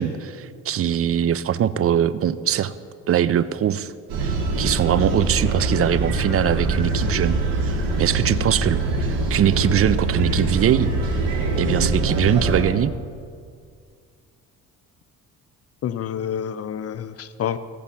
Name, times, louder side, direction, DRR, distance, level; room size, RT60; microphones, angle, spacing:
voice 1, 0.0-2.7 3.1-3.9 4.2-7.4 7.6-10.9 11.6-12.9, right 10 dB, 40° right, 16 dB, 0.5 m, -22 dB
sound 1, 4.1-12.6, right 2 dB, 85° right, 2.0 m, -23 dB
voice 2, 15.8-17.6, left 9 dB, 45° left, 13 dB, 0.6 m, -28 dB
14.5 x 4.9 x 5.7 m, 2.1 s
supercardioid pair, 75°, 34 cm